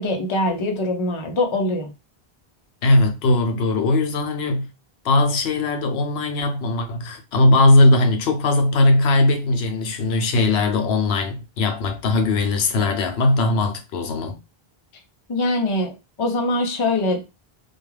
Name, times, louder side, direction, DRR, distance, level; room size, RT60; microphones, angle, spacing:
voice 1, 0.0-1.9 15.3-15.9 16.2-17.2, left 2 dB, 35° left, 0.5 m, -22 dB
voice 2, 2.8-4.7 5.0-14.4, left 2 dB, 80° left, 0.8 m, -19 dB
2.3 x 2.2 x 3.1 m
omnidirectional pair, 1.0 m